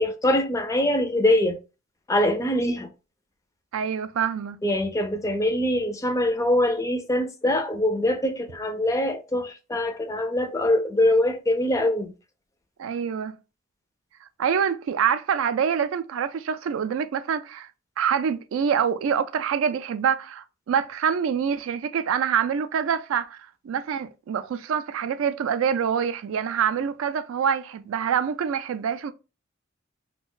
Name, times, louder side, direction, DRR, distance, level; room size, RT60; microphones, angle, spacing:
voice 1, 0.0-1.6 2.1-2.9 4.6-12.1, left 1 dB, 15° left, 0.4 m, -23 dB
voice 2, 3.7-4.6 12.8-13.4 14.4-17.7 18.0-23.4 23.6-29.1, right 7 dB, 70° right, 0.3 m, -25 dB
2.4 x 2.2 x 3.7 m
head